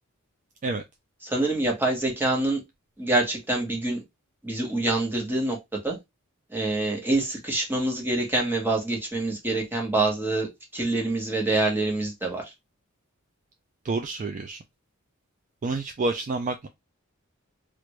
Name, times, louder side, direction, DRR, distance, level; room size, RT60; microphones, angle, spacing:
voice 1, 1.2-2.6 3.0-4.0 4.4-5.6 5.8-6.0 6.5-10.5 10.7-12.4, right 2 dB, 10° right, 1.1 m, -26 dB
voice 2, 13.8-14.6 15.6-16.7, right 3 dB, 35° right, 0.3 m, -28 dB
3.2 x 2.5 x 3.0 m
head